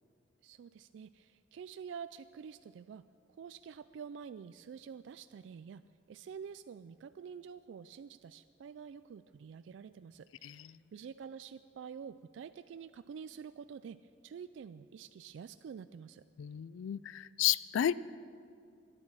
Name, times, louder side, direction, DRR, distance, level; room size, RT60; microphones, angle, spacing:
voice 1, 0.4-3.1 3.4-5.8 6.1-16.3, right 7 dB, 75° right, 12 dB, 0.3 m, -48 dB
voice 2, 10.4-10.7 16.4-17.9, left 11 dB, 90° left, 18 dB, 0.3 m, -32 dB
13.0 x 11.0 x 7.4 m, 2.4 s
head